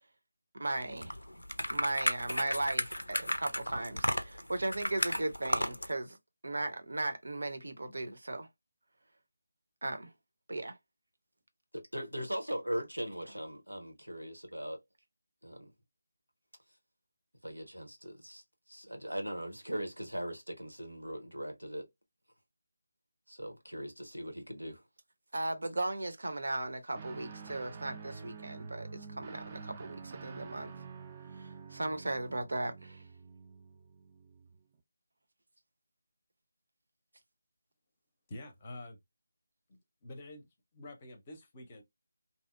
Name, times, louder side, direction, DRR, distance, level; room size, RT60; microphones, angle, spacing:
voice 1, 0.5-1.2 1.7-6.2 6.4-8.5 9.8-10.1 10.5-10.8 25.3-30.7 31.4-33.0, right 2 dB, 60° right, 0.6 m, -37 dB
sound 1, 0.8-5.9, equal, 85° left, 0.4 m, -34 dB
voice 2, 11.7-14.8 15.4-15.7 17.4-21.9 23.3-24.8, equal, 90° right, 0.9 m, -40 dB
Guitar, 26.9-34.6, right 5 dB, 25° right, 0.3 m, -48 dB
voice 3, 38.3-39.0 39.7-40.5 40.7-41.8, left 1 dB, 25° left, 0.6 m, -47 dB
2.6 x 2.0 x 2.4 m
figure-of-eight pair, 160°, 0 cm